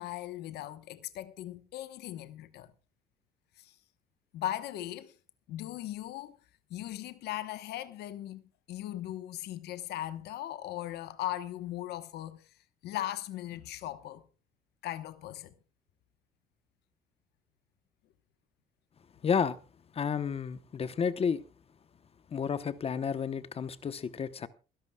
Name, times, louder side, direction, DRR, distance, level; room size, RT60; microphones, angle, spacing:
voice 1, 0.0-2.7 3.6-3.7 4.3-5.2 5.5-6.4 6.7-8.4 8.7-12.5 12.8-14.2 14.8-15.6, left 13 dB, 75° left, 1.1 m, -38 dB
voice 2, 19.2-19.6 19.9-21.4 22.3-24.5, left 6 dB, 35° left, 0.9 m, -31 dB
28.0 x 11.5 x 2.3 m
cardioid pair, 110°, 17 cm